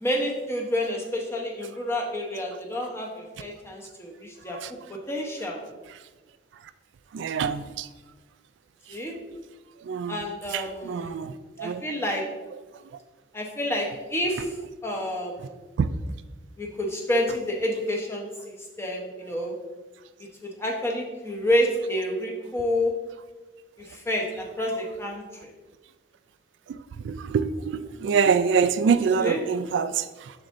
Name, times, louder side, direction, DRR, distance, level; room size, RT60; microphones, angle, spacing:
voice 1, 0.0-4.6 5.1-5.6 8.9-9.1 10.1-11.2 11.6-12.2 13.3-14.6 14.8-15.6 16.6-19.5 20.4-22.9 23.9-25.2 28.9-29.4, left 1 dB, 15° left, -1 dB, 0.9 m, -29 dB
voice 2, 7.1-7.9 9.9-10.2 10.5-11.3 11.6-11.8 15.8-15.9 27.0-30.3, right 6 dB, 75° right, 12 dB, 0.3 m, -25 dB
7.2 x 6.3 x 2.6 m, 1.2 s
head